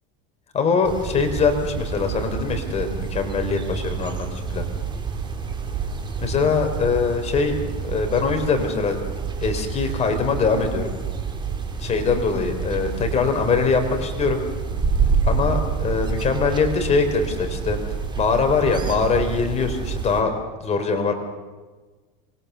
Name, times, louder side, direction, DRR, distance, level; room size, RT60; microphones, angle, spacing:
voice 1, 0.5-4.3 4.5-4.7 6.2-9.0 9.4-10.9 11.8-14.4 15.2-17.8 18.2-20.3 20.6-21.1, left 4 dB, 30° left, 5 dB, 3.7 m, -22 dB
sound 1, 0.8-20.2, right 5 dB, 20° right, 3.7 m, -28 dB
26.0 x 21.0 x 6.8 m, 1.3 s
supercardioid pair, 120°, 21 cm